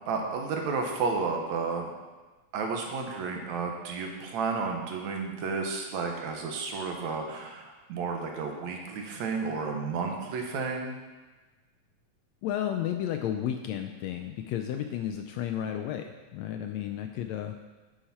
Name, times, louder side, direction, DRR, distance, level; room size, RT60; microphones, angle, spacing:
voice 1, 0.1-1.9 2.5-11.0, right 4 dB, 70° right, 2 dB, 2.3 m, -32 dB
voice 2, 12.4-17.5, left 10 dB, 80° left, 6 dB, 1.6 m, -32 dB
9.6 x 8.8 x 4.3 m, 1.2 s
omnidirectional pair, 3.5 m